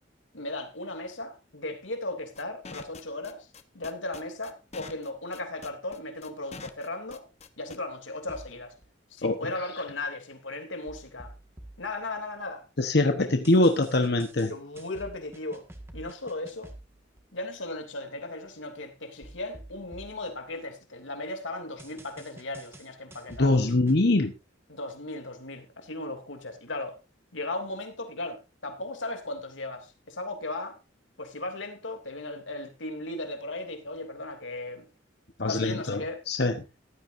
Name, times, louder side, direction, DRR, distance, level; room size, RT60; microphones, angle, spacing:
voice 1, 0.3-3.5 3.7-7.3 7.6-8.7 9.1-11.3 11.8-12.6 12.9-13.1 14.4-15.6 15.9-16.7 17.3-23.5 24.7-27.0 27.3-30.8 31.2-34.9 35.5-36.2, left 2 dB, 90° left, 2.9 m, -36 dB
sound 1, 2.3-7.8, left 4 dB, 35° left, 1.1 m, -44 dB
sound 2, 8.3-8.8 10.9-12.7 13.4-17.2 19.2-21.1 21.8-24.0, right 1 dB, 15° right, 1.8 m, -49 dB
voice 2, 12.8-14.5 23.4-24.3 35.4-36.0 36.3-36.6, left 2 dB, 60° left, 1.1 m, -23 dB
15.5 x 12.5 x 2.7 m
head